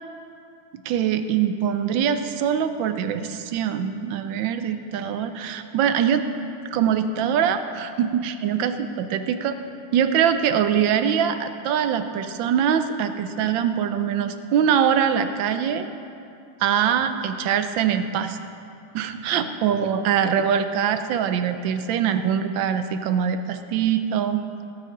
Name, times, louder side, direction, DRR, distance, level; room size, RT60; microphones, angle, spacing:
voice 1, 0.8-6.2 6.7-9.5 9.9-15.8 16.6-18.4 18.9-24.4, right 8 dB, 75° right, 9 dB, 1.2 m, -23 dB
16.0 x 9.3 x 3.8 m, 2.5 s
omnidirectional pair, 2.4 m